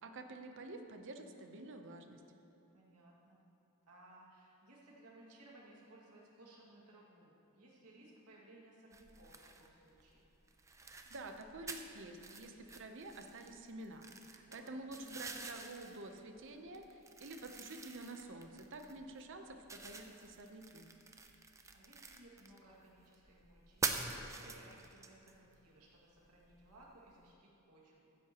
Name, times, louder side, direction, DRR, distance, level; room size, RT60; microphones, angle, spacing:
voice 1, 0.0-2.2 11.1-20.9, right 2 dB, 60° right, 5 dB, 0.8 m, -49 dB
voice 2, 2.7-3.4 3.9-10.3 14.5-14.8 21.3-28.2, right 1 dB, 90° right, -4 dB, 2.1 m, -61 dB
sound 1, 8.9-27.3, right 4 dB, 15° right, 0.5 m, -47 dB
15.0 x 9.7 x 3.0 m, 3.0 s
head